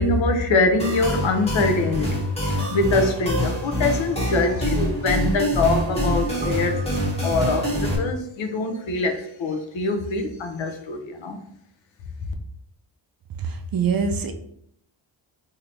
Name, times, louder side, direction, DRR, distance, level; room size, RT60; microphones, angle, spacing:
voice 1, 0.0-11.4, left 2 dB, 70° left, 5 dB, 0.7 m, -24 dB
sound 1, 0.8-8.0, equal, 15° left, 1.0 m, -25 dB
sound 2, 4.1-9.3 10.2-10.3, equal, 15° right, 1.1 m, -39 dB
voice 2, 13.4-14.3, right 5 dB, 50° right, 7 dB, 0.5 m, -24 dB
3.2 x 2.8 x 2.6 m, 0.70 s
cardioid pair, 65°, 48 cm